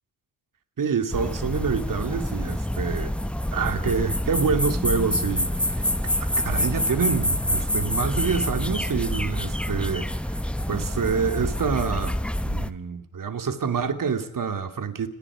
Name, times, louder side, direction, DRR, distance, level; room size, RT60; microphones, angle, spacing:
voice 1, 0.8-3.1 3.5-5.8 6.4-10.4 10.7-12.2 12.4-15.1, right 6 dB, 55° right, 2.7 m, -27 dB
sound 1, 1.1-12.7, equal, 5° left, 1.1 m, -27 dB
30.0 x 19.0 x 5.0 m
supercardioid pair, 60°, 39 cm